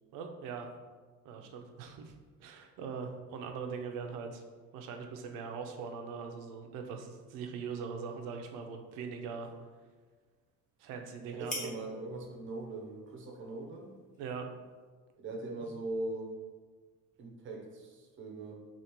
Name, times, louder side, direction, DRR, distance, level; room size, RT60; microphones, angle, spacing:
voice 1, 0.1-0.7 1.2-2.1 2.4-4.4 4.7-9.5 10.8-11.7 14.2-14.5 15.6-15.7, right 5 dB, 75° right, 4 dB, 0.6 m, -41 dB
sound 1, 7.2-14.9, left 1 dB, 25° left, 1.0 m, -51 dB
voice 2, 11.2-13.9 15.2-16.3 17.2-18.6, right 2 dB, 35° right, 1 dB, 0.7 m, -41 dB
5.0 x 2.5 x 2.9 m, 1.4 s
cardioid pair, 145°, 32 cm